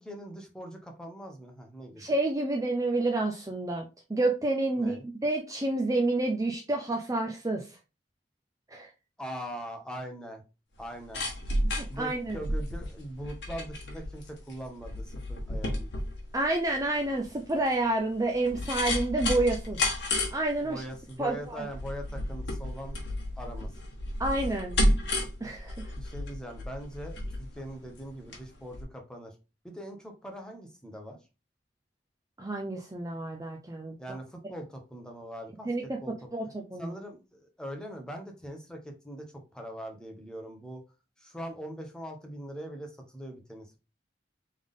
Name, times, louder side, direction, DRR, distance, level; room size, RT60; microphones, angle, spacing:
voice 1, 0.0-2.1 4.8-5.0 9.2-10.4 10.8-11.3 11.9-16.0 20.6-23.0 23.4-23.7 26.0-29.3 29.6-31.2 34.0-36.1 36.8-39.2 39.5-40.8 41.2-43.8, equal, 5° left, 3 dB, 1.0 m, -41 dB
voice 2, 2.0-4.9 5.2-7.8 8.7-8.9 11.7-12.4 16.3-19.8 20.3-20.8 21.2-21.7 24.2-24.8 25.4-25.8 32.4-33.9 35.7-36.0 36.3-36.9, right 2 dB, 20° right, 2 dB, 0.5 m, -29 dB
sound 1, 10.8-28.4 28.7-28.8, left 1 dB, 65° left, 1.3 m, -32 dB
3.6 x 3.6 x 3.6 m, 0.29 s
head